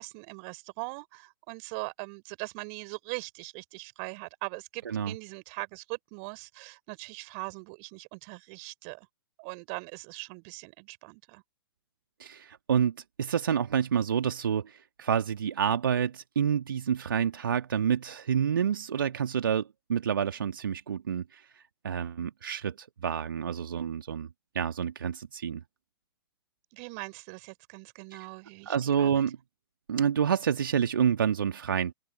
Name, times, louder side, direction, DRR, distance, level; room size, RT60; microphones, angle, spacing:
voice 1, 0.0-9.1 9.4-11.4 26.7-29.2, right 38 dB, 35° right, 4.3 m, -41 dB
voice 2, 12.2-24.3 24.5-25.6 28.7-29.4 29.9-31.9, right 8 dB, 60° right, 2.0 m, -28 dB
open air
figure-of-eight pair, 110°, 13 cm